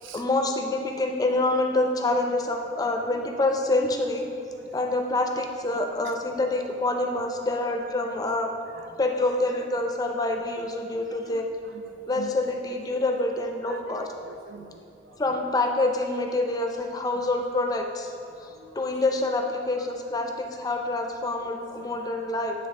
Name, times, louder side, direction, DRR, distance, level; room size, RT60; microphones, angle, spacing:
voice 1, 0.1-4.3 4.7-8.5 9.0-11.5 12.1-14.1 15.2-18.1 18.4-22.5, left 2 dB, 20° left, 3 dB, 0.4 m, -26 dB
voice 2, 10.8-12.3 13.6-15.4 17.0-17.2 18.5-18.8 21.4-21.5 21.8-21.9, right 5 dB, 90° right, 6 dB, 0.5 m, -46 dB
9.1 x 3.4 x 3.6 m, 2.5 s
head